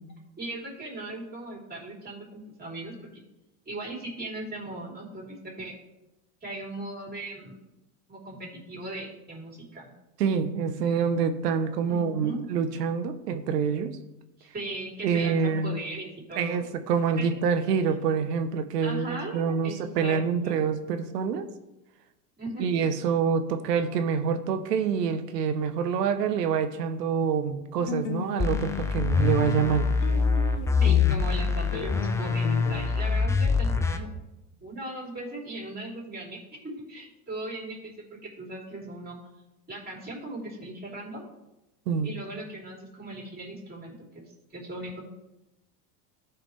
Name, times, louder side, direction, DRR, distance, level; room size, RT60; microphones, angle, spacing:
voice 1, 0.4-3.0 3.7-5.7 6.4-7.6 8.1-9.9 11.8-12.4 14.4-16.6 17.2-17.3 18.8-20.2 20.4-20.7 22.4-22.7 30.8-34.1 34.6-39.2 39.7-41.3 42.0-44.2 44.5-45.0, right 2 dB, 20° right, -2 dB, 3.5 m, -38 dB
voice 2, 10.2-13.9 15.0-15.7 16.4-21.5 22.6-29.9 41.9-42.1, right 6 dB, 85° right, 10 dB, 1.0 m, -26 dB
sound 1, 27.8-32.9, left 8 dB, 55° left, 1.0 m, -36 dB
sound 2, 28.4-34.0, left 5 dB, 5° left, 0.4 m, -24 dB
14.0 x 5.0 x 3.2 m, 0.95 s
hypercardioid pair, 100°, 47 cm